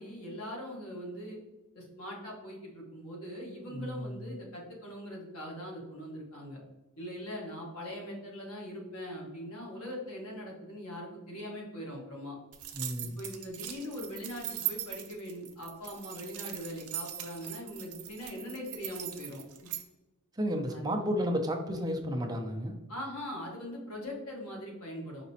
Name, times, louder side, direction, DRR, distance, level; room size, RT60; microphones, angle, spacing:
voice 1, 0.0-1.4 1.7-6.6 7.0-12.4 13.2-19.4 20.7-21.1 22.9-25.3, equal, 75° left, -2 dB, 1.4 m, -41 dB
voice 2, 3.7-4.3 12.7-13.2 20.3-22.8, equal, 20° right, 2 dB, 0.5 m, -32 dB
sound 1, 12.5-19.8, right 12 dB, 80° right, 0.5 m, -40 dB
5.1 x 2.9 x 2.8 m, 1.1 s
head